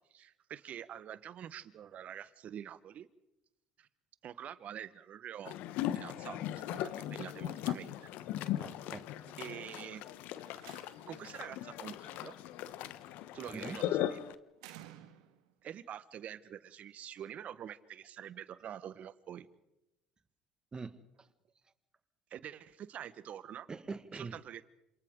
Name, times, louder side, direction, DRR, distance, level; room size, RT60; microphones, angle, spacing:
voice 1, 0.1-3.1 3.8-3.9 4.2-5.6 5.9-8.1 9.4-10.0 11.1-12.4 13.3-14.2 15.6-19.5 22.3-23.7 24.1-24.7, right 10 dB, 55° right, 1.3 m, -46 dB
sound 1, 5.5-14.4, left 13 dB, 70° left, 1.0 m, -38 dB
voice 2, 8.6-9.3 13.5-13.8 20.7-21.3 23.7-24.4, right 4 dB, 30° right, 1.7 m, -44 dB
Slam, 10.2-11.3 12.8-13.2 14.6-15.5, right 12 dB, 80° right, 1.8 m, -54 dB
29.0 x 27.0 x 3.8 m
hypercardioid pair, 70°, 3 cm